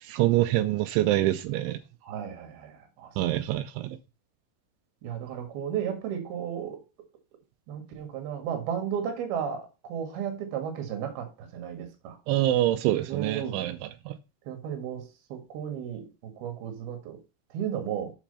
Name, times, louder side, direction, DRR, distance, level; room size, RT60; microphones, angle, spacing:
voice 1, 0.1-1.8 3.2-4.0 12.3-13.8 14.1-14.2, right 15 dB, 85° right, 3.1 m, -25 dB
voice 2, 2.0-3.1 5.0-6.8 7.7-12.2 13.1-13.6 14.5-17.2 17.5-18.1, right 8 dB, 60° right, 3.5 m, -34 dB
7.7 x 6.0 x 5.5 m
omnidirectional pair, 5.4 m